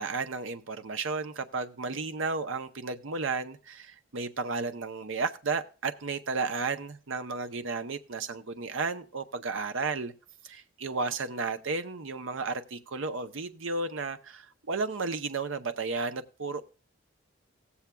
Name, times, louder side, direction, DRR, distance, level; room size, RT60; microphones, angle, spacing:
voice 1, 0.0-10.1 10.4-16.6, right 4 dB, 85° right, 10 dB, 0.7 m, -33 dB
18.0 x 7.1 x 2.3 m, 0.38 s
head